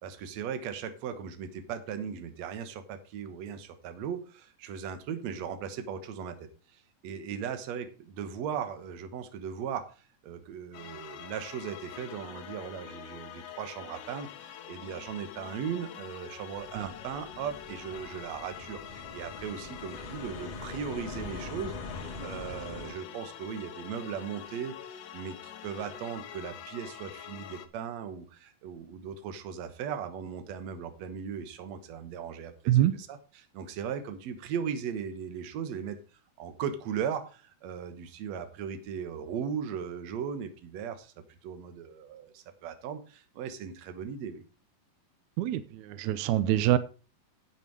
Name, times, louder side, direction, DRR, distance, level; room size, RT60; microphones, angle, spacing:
voice 1, 0.0-9.9 10.2-36.0 36.4-44.4, right 7 dB, 60° right, 2.2 m, -38 dB
sound 1, 10.7-27.7, left 10 dB, 75° left, 2.4 m, -46 dB
sound 2, 16.5-22.9, left 3 dB, 30° left, 1.1 m, -43 dB
voice 2, 45.4-46.8, right 13 dB, 80° right, 1.7 m, -25 dB
9.2 x 8.4 x 4.7 m
omnidirectional pair, 3.9 m